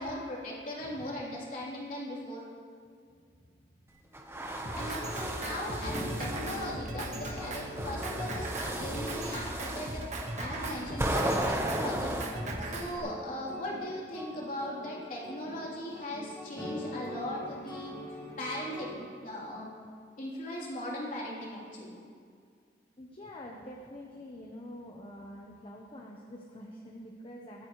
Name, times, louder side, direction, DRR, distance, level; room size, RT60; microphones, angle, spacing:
voice 1, 0.0-2.4 4.7-10.0 10.4-12.2 12.6-17.9 18.4-19.7 20.2-22.0, left 1 dB, 50° left, -5 dB, 3.5 m, -38 dB
voice 2, 0.8-1.3 3.1-3.7 4.0-4.2 4.7-5.3 23.0-27.7, left 1 dB, 30° left, -1 dB, 1.0 m, -47 dB
sound 1, 4.1-6.7 7.4-12.2, right 1 dB, 15° right, 1.0 m, -35 dB
Drum kit, 4.6-13.0, right 2 dB, 40° right, 1.5 m, -38 dB
sound 2, 5.0-18.9, left 1 dB, 15° left, 4.1 m, -44 dB
24.0 x 9.4 x 3.2 m, 2.1 s
head